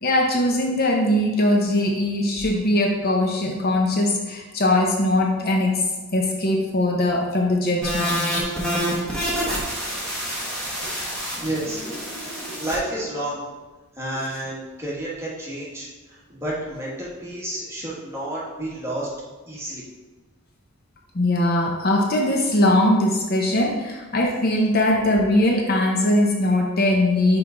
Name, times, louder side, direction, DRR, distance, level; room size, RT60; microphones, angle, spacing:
voice 1, 0.0-5.9 6.1-8.3 10.8-11.0 12.5-12.6 21.1-27.4, left 1 dB, 45° left, 0 dB, 0.7 m, -21 dB
sound 1, 7.8-12.8, equal, 5° left, 1.1 m, -27 dB
voice 2, 11.1-11.8 12.6-13.4 13.9-19.1 19.5-19.8, right 1 dB, 15° right, -6 dB, 1.4 m, -30 dB
5.6 x 4.6 x 3.8 m, 1.2 s
head